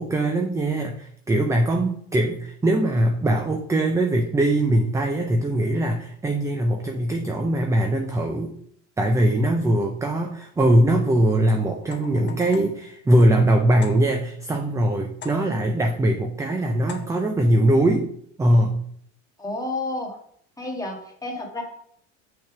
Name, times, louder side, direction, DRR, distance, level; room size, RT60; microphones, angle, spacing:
voice 1, 0.0-8.5 9.0-18.1 18.4-18.8, right 1 dB, 10° right, 3 dB, 0.5 m, -21 dB
sound 1, 11.8-14.4 15.2-15.8 16.9-17.4, left 7 dB, 30° left, 0.9 m, -43 dB
voice 2, 15.4-15.7 19.4-20.2 20.6-21.6, left 2 dB, 10° left, -1 dB, 1.8 m, -31 dB
6.1 x 3.6 x 5.9 m, 0.65 s
supercardioid pair, 120°, 35 cm